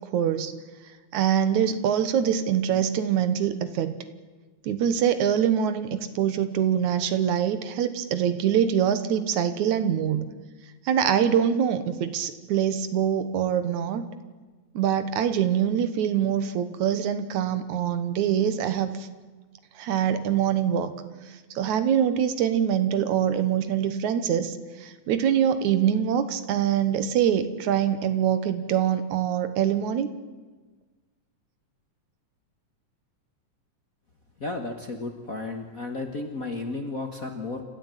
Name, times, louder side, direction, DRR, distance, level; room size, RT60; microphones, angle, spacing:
voice 1, 0.1-0.5 1.1-4.0 4.6-10.3 10.9-14.0 14.7-19.1 19.8-20.9 21.5-30.1, right 9 dB, 75° right, 11 dB, 2.6 m, -24 dB
voice 2, 34.4-37.6, left 3 dB, 40° left, 5 dB, 1.4 m, -33 dB
28.0 x 13.5 x 9.1 m, 1.3 s
omnidirectional pair, 3.4 m